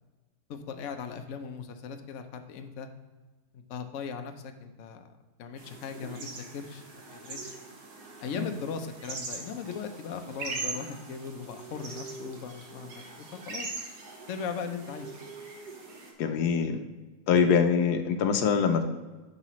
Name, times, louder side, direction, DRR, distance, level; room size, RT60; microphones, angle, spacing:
voice 1, 0.5-2.9 3.5-5.0 5.4-7.6 8.2-13.7 14.3-15.1, left 6 dB, 60° left, 6 dB, 0.9 m, -38 dB
sound 1, 5.6-16.1, right 3 dB, 75° right, 1.9 m, -41 dB
voice 2, 16.2-16.8 17.3-18.9, left 6 dB, 75° left, 7 dB, 1.2 m, -24 dB
9.7 x 6.5 x 3.1 m, 1.3 s
omnidirectional pair, 1.7 m